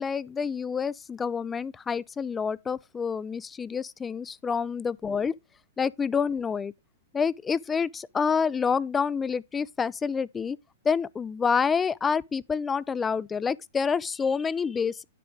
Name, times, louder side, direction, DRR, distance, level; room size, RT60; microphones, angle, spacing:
voice 1, 0.0-5.3 5.8-6.7 7.1-10.6 10.8-15.0, left 6 dB, 15° left, 0.4 m, -28 dB
10.0 x 3.8 x 5.1 m
hypercardioid pair, 115°, 0 cm